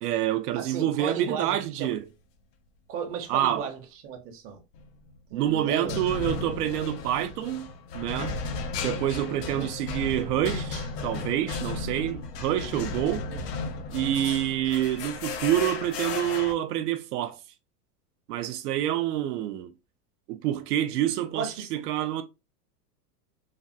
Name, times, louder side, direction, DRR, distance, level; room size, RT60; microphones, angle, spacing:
voice 1, 0.0-2.1 3.3-3.7 5.3-7.7 7.9-8.4 8.8-13.2 13.9-17.4 18.3-19.7 20.3-22.2, right 12 dB, 75° right, 0.5 m, -27 dB
voice 2, 0.5-1.9 2.9-4.6 5.3-6.1 9.2-9.7 13.3-13.7 21.3-21.7, right 6 dB, 30° right, 0.6 m, -35 dB
sound 1, 4.7-5.1 5.9-16.5, left 4 dB, 80° left, 0.8 m, -34 dB
3.2 x 2.2 x 2.5 m
supercardioid pair, 130°, 48 cm